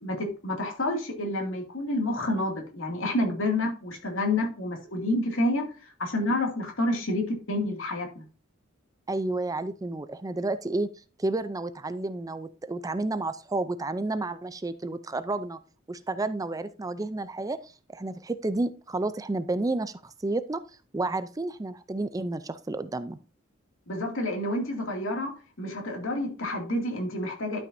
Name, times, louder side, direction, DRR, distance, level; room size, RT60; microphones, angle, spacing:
voice 1, 0.0-8.2 23.9-27.6, left 1 dB, 75° left, 2 dB, 2.4 m, -29 dB
voice 2, 9.1-10.9 11.2-15.6 15.9-20.6 20.9-23.2, right 2 dB, 15° right, 13 dB, 0.4 m, -31 dB
12.0 x 5.5 x 2.6 m, 0.35 s
head